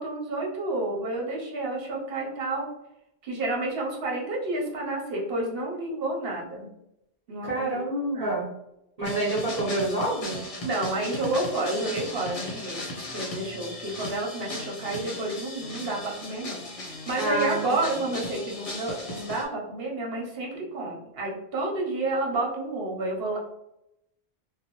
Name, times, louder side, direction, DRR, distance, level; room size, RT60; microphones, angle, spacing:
voice 1, 0.0-2.7 3.2-6.7 7.3-7.7 8.1-8.3 10.6-12.8 13.1-23.4, right 2 dB, 70° right, -2 dB, 1.0 m, -30 dB
voice 2, 7.4-8.5 9.0-10.4 17.2-17.7, right 1 dB, 40° right, -9 dB, 1.0 m, -27 dB
sound 1, 9.0-19.4, left 1 dB, 40° left, 0.7 m, -37 dB
2.9 x 2.0 x 2.9 m, 0.83 s
omnidirectional pair, 1.1 m